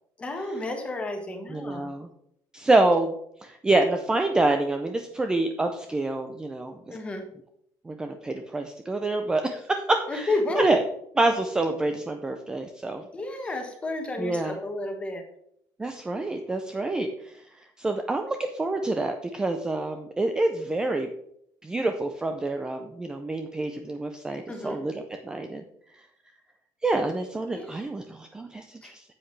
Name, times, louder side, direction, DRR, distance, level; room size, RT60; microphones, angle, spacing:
voice 1, 0.2-1.9 6.9-7.2 10.1-10.7 13.1-15.2 24.5-24.8 27.5-27.8 28.8-28.9, left 2 dB, 15° left, 4 dB, 1.3 m, -31 dB
voice 2, 1.5-2.1 2.5-3.1 3.4-7.0 7.9-10.3 10.5-10.8 11.2-13.0 14.2-14.5 15.8-17.4 17.8-21.1 21.6-24.9 25.2-25.6 26.8-29.0, right 2 dB, 10° right, 6 dB, 0.5 m, -27 dB
9.8 x 7.9 x 3.2 m, 0.73 s
cardioid pair, 170°, 8 cm